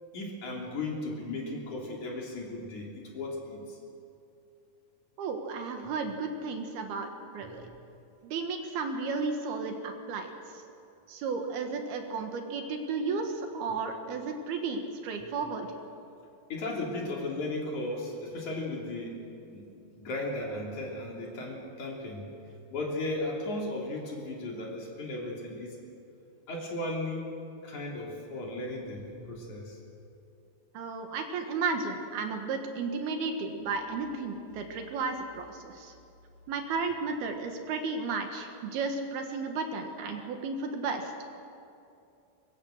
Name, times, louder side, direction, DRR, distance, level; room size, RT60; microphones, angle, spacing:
voice 1, 0.1-3.8 7.5-7.7 16.5-22.3 22.7-25.8 26.5-27.3 27.6-29.8, left 2 dB, 50° left, -2 dB, 4.2 m, -36 dB
voice 2, 5.2-7.7 8.2-10.3 11.1-15.7 30.7-35.9 36.5-41.1, right 4 dB, 70° right, 5 dB, 3.4 m, -33 dB
23.0 x 22.5 x 6.5 m, 2.7 s
omnidirectional pair, 4.7 m